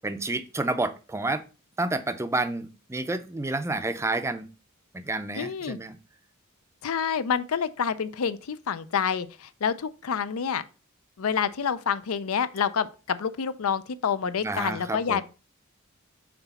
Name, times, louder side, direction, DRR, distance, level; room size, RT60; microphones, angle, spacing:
voice 1, 0.0-1.4 1.8-4.5 4.9-6.0 14.4-15.2, right 2 dB, 15° right, 0.5 m, -29 dB
voice 2, 5.3-5.8 6.8-10.6 11.2-15.2, left 7 dB, 70° left, 0.5 m, -28 dB
6.0 x 4.0 x 5.4 m
head